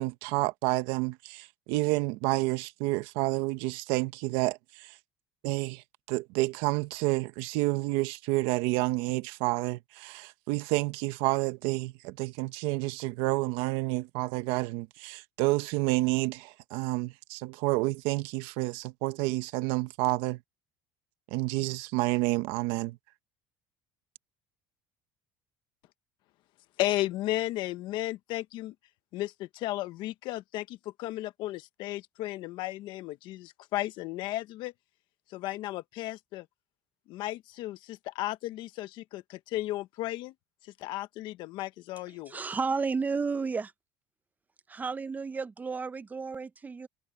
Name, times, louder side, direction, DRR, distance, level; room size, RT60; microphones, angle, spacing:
voice 1, 0.0-5.0 5.4-20.4 21.3-23.0, right 20 dB, 80° right, 1.5 m, -29 dB
voice 2, 26.8-28.7 29.1-34.7 35.3-36.5 37.1-40.3 40.6-42.4, left 16 dB, 65° left, 1.3 m, -34 dB
voice 3, 42.3-43.7 44.7-46.9, right 4 dB, 20° right, 0.7 m, -32 dB
supercardioid pair, 115°, 9 cm